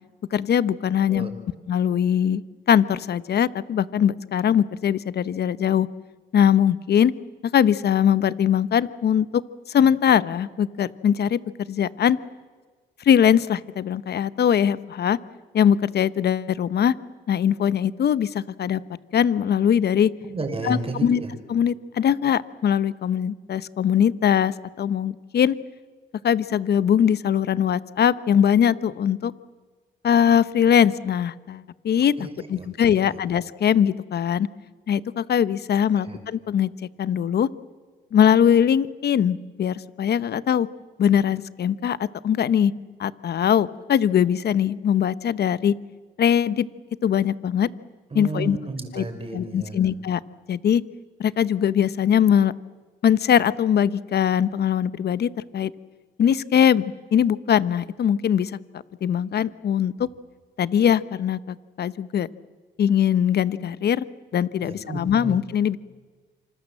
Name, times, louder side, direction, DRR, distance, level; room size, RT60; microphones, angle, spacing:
voice 1, 0.3-1.3 1.7-2.4 2.7-5.9 6.3-7.1 7.4-9.4 9.7-11.4 11.7-12.2 13.0-15.2 15.5-16.9 17.3-18.8 19.1-20.1 20.6-21.2 21.5-25.6 26.2-29.3 30.0-32.1 32.5-34.5 34.9-36.7 37.0-37.5 38.1-40.7 41.0-42.7 43.0-45.7 46.2-46.7 47.0-47.7 48.1-48.6 48.9-49.0 49.3-50.2 50.5-50.8 51.2-52.5 53.0-55.7 56.2-58.5 59.0-60.1 60.6-62.3 62.8-64.0 64.3-65.8, left 9 dB, 55° left, 16 dB, 0.9 m, -21 dB
voice 2, 20.2-21.3 32.2-33.2 36.0-36.2 48.1-49.8 64.6-65.4, right 2 dB, 30° right, 6 dB, 5.3 m, -33 dB
27.0 x 26.0 x 7.6 m, 1.4 s
cardioid pair, 90°, 20 cm